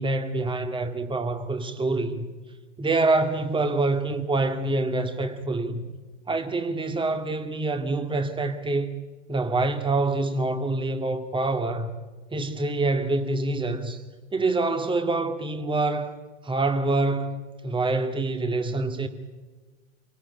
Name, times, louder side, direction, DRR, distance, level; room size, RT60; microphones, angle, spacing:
voice 1, 0.0-2.3 2.8-5.8 6.3-8.9 9.3-11.9 12.3-14.0 14.3-16.2 16.4-19.1, right 2 dB, 15° right, 2.0 m, -26 dB
27.0 x 17.5 x 9.7 m
figure-of-eight pair, 95°, 38 cm